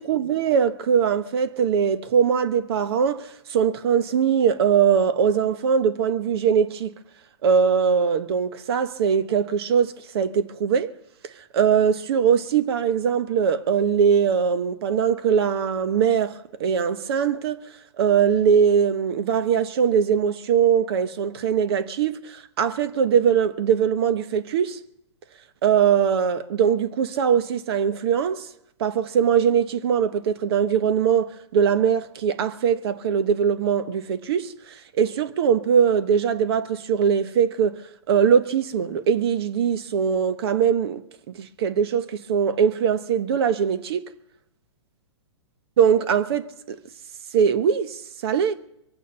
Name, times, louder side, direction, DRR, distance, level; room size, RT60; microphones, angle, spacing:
voice 1, 0.0-6.9 7.4-10.9 11.2-17.6 18.0-24.8 25.6-28.5 28.8-37.8 38.1-41.0 41.4-44.1 45.8-46.8 47.3-48.6, right 7 dB, 55° right, 1.0 m, -21 dB
23.5 x 9.2 x 5.5 m
hypercardioid pair, 140°, 15 cm